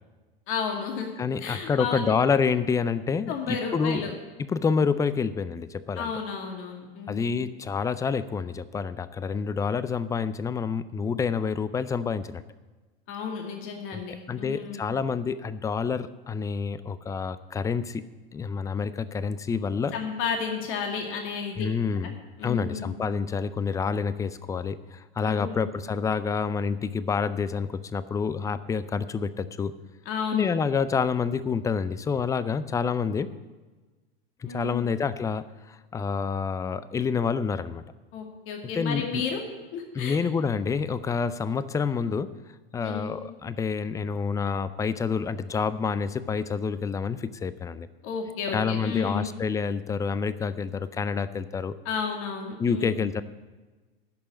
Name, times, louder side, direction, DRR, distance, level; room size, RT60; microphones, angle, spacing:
voice 1, 0.5-1.1 1.4-2.1 3.3-4.1 6.0-7.4 13.1-14.8 19.9-21.7 22.0-22.1 22.4-22.9 25.2-25.7 30.1-30.5 34.4-34.9 38.1-39.4 39.7-40.2 42.8-43.2 48.0-49.3 51.8-53.0, left 6 dB, 45° left, 2 dB, 2.2 m, -32 dB
voice 2, 1.2-4.1 4.5-6.1 7.1-12.4 13.9-14.0 14.3-18.0 18.3-19.9 21.6-22.1 22.4-29.7 30.3-33.3 34.4-37.8 38.8-39.2 39.9-42.3 42.7-47.9 48.5-51.7 52.6-53.2, left 5 dB, 10° left, 15 dB, 0.4 m, -28 dB
11.0 x 6.5 x 9.0 m, 1.2 s
hypercardioid pair, 90°, 29 cm